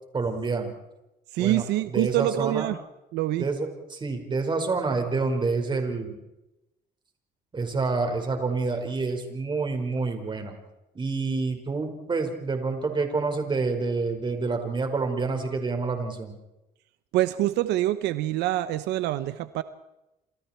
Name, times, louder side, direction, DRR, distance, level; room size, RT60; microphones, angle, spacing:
voice 1, 0.1-0.7 1.4-1.7 1.9-2.7 3.4-6.2 7.5-10.5 11.0-16.4, right 4 dB, 30° right, 5 dB, 5.3 m, -28 dB
voice 2, 1.3-2.8 3.1-3.5 17.1-19.6, right 15 dB, 85° right, 13 dB, 1.0 m, -25 dB
28.5 x 27.5 x 4.6 m, 0.94 s
cardioid pair, 110°, 17 cm